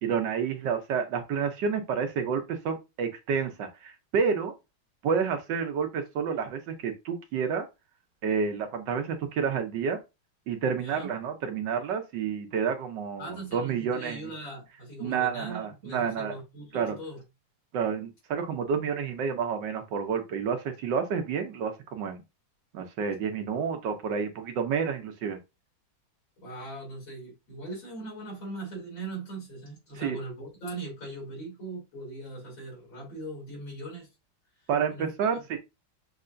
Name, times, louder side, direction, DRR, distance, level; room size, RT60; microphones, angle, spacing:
voice 1, 0.0-4.5 5.0-7.7 8.2-10.0 10.5-14.3 15.0-16.4 16.7-17.0 17.7-22.2 22.7-25.4 30.0-30.2 34.7-35.6, right 6 dB, 65° right, 1.3 m, -29 dB
voice 2, 10.8-11.1 13.2-17.2 26.4-34.1 34.9-35.4, right 2 dB, 65° left, 3.5 m, -40 dB
6.5 x 2.9 x 2.5 m
omnidirectional pair, 2.3 m